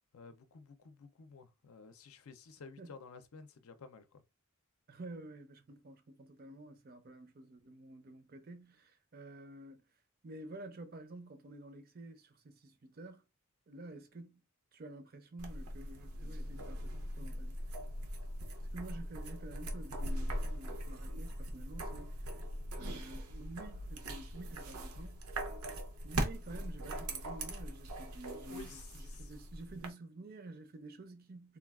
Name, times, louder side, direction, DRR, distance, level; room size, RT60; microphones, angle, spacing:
voice 1, 0.1-4.2 28.5-28.8 29.1-29.3, left 4 dB, 75° left, 0.5 m, -53 dB
voice 2, 4.9-9.8 10.2-13.2 13.7-14.4 14.7-17.6 18.6-22.2 22.7-25.4 26.0-31.6, right 2 dB, 40° right, 0.5 m, -50 dB
sound 1, 15.4-29.9, right 1 dB, 85° right, 0.7 m, -41 dB
3.7 x 2.3 x 2.3 m
head